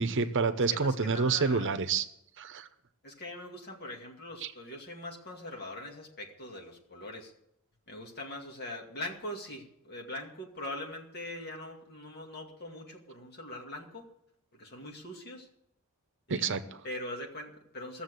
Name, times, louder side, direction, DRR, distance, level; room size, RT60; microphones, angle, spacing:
voice 1, 0.0-2.1 2.4-2.7 16.3-16.8, right 4 dB, 60° right, 11 dB, 0.8 m, -28 dB
voice 2, 0.7-1.8 3.0-7.3 7.9-14.1 14.5-15.5 16.3-16.5 16.8-18.0, left 1 dB, 50° left, 1 dB, 2.3 m, -42 dB
15.0 x 7.1 x 8.3 m, 0.77 s
head